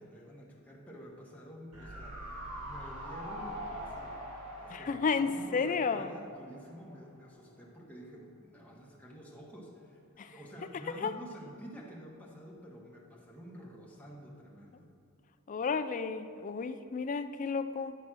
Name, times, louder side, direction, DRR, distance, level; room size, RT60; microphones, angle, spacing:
voice 1, 0.0-4.2 4.6-14.9, equal, 5° left, -4 dB, 1.3 m, -49 dB
sound 1, 1.7-7.0 7.2-7.3, equal, 85° right, 1.5 m, -43 dB
voice 2, 4.7-6.1 10.2-10.3 11.0-11.1 15.5-18.0, left 5 dB, 35° left, 10 dB, 0.3 m, -32 dB
10.0 x 4.2 x 6.1 m, 2.6 s
head